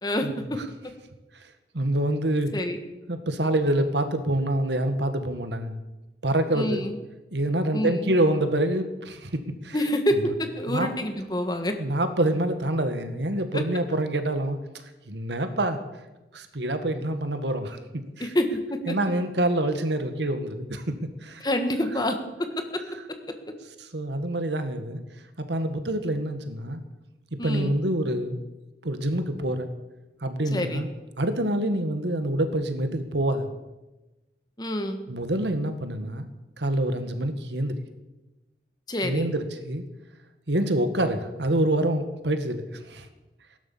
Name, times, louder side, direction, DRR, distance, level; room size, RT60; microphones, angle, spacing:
voice 1, 0.0-0.6 2.5-2.8 6.5-7.0 7.7-8.1 9.7-11.7 13.5-13.6 18.2-18.5 18.9-19.0 21.4-22.5 27.4-27.8 30.5-30.8 34.6-35.0 38.9-39.3, left 1 dB, 25° left, 6 dB, 1.7 m, -27 dB
voice 2, 1.7-2.5 3.1-5.8 6.2-6.8 7.3-9.8 10.7-10.9 11.8-14.6 15.1-15.8 16.3-17.8 18.2-18.3 18.9-21.5 23.9-25.0 25.4-26.8 27.4-28.4 28.8-29.7 30.2-30.9 31.2-33.5 35.1-36.3 36.6-37.7 39.0-39.8 40.5-43.1, right 1 dB, 80° right, 9 dB, 1.7 m, -26 dB
16.5 x 11.5 x 7.2 m, 1.1 s
head